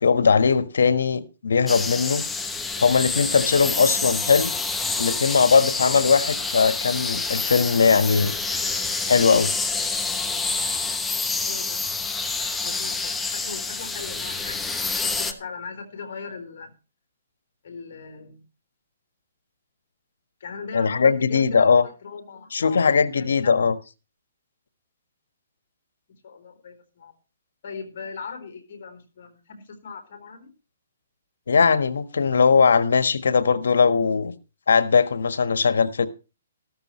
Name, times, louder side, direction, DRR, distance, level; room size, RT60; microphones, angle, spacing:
voice 1, 0.0-2.2 2.8-4.5 5.0-8.3 9.1-9.5 20.7-21.8 22.5-23.7 31.5-34.3 34.7-36.1, left 5 dB, 85° left, 1.4 m, -19 dB
sound 1, 1.7-15.3, left 4 dB, 5° left, 1.0 m, -27 dB
voice 2, 11.4-11.8 12.6-16.7 17.6-18.4 20.4-23.6 26.1-27.1 27.6-30.5, left 5 dB, 55° left, 3.9 m, -39 dB
14.0 x 13.5 x 3.1 m
hypercardioid pair, 155°, 0 cm